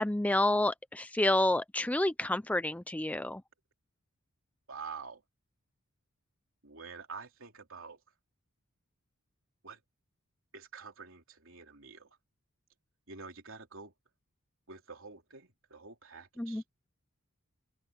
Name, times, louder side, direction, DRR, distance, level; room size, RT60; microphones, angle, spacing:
voice 1, 0.0-3.4 16.4-16.6, left 1 dB, 5° left, 0.4 m, -29 dB
voice 2, 4.7-5.2 6.6-8.0 9.6-9.8 10.5-12.1 13.1-13.9 14.7-16.6, right 5 dB, 60° right, 3.6 m, -47 dB
open air
head